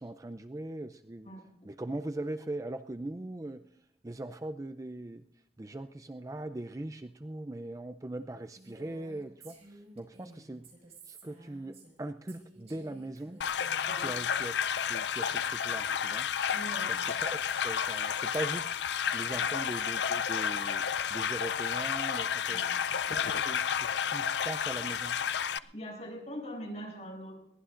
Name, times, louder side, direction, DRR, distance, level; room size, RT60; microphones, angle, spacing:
voice 1, 0.0-1.3 1.6-3.6 4.0-5.2 5.6-10.7 11.1-13.4 14.0-14.5 14.9-16.3 16.9-17.4 17.6-20.8 21.1-22.6 23.1-25.2, right 1 dB, 20° right, 9 dB, 0.4 m, -40 dB
Female speech woman speaking, 8.6-12.0 12.3-14.1, right 1 dB, 35° right, 5.8 m, -54 dB
sound 1, 13.4-25.6, left 8 dB, 80° left, 0.5 m, -31 dB
voice 2, 16.5-17.2 19.3-19.4 22.5-22.7 25.6-27.4, equal, 40° left, 0 dB, 7.4 m, -42 dB
22.5 x 18.0 x 2.6 m, 0.79 s
head